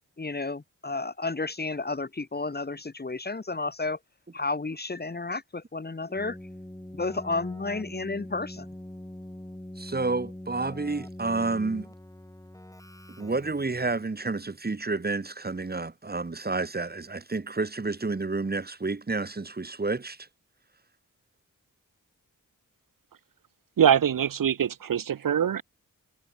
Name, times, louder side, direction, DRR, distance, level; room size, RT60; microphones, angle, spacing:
voice 1, 0.2-4.0 4.3-6.4 6.9-8.7, left 3 dB, 30° left, 1.1 m, -32 dB
Keyboard (musical), 6.1-14.2, left 1 dB, 10° left, 3.4 m, -43 dB
voice 2, 9.8-11.9 13.2-20.2, right 3 dB, 30° right, 1.2 m, -30 dB
voice 3, 23.8-25.6, right 9 dB, 75° right, 0.7 m, -23 dB
wide cardioid pair, 70°, 33 cm